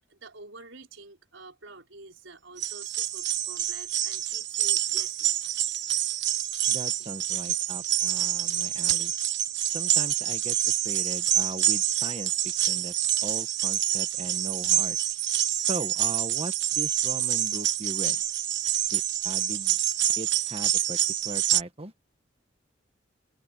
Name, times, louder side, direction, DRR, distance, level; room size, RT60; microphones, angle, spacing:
voice 1, 0.0-5.3, right 3 dB, 80° right, 5.0 m, -48 dB
sound 1, 2.6-21.6, right 12 dB, 65° right, 1.2 m, -27 dB
voice 2, 6.7-9.1 9.7-12.9 13.2-15.0 15.6-18.2 18.9-19.8 20.2-21.0 21.2-21.9, right 1 dB, 30° right, 1.5 m, -38 dB
head